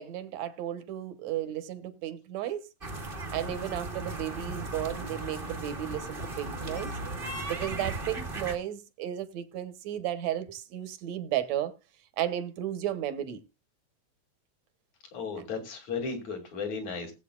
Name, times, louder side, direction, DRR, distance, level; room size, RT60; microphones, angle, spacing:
voice 1, 0.0-2.7 3.3-6.9 7.5-11.7 12.2-13.4, right 11 dB, 70° right, 2.2 m, -34 dB
sound 1, 2.8-8.6, right 2 dB, 35° right, 0.8 m, -36 dB
voice 2, 15.1-17.1, left 5 dB, 70° left, 3.8 m, -35 dB
19.0 x 8.1 x 2.4 m
omnidirectional pair, 3.4 m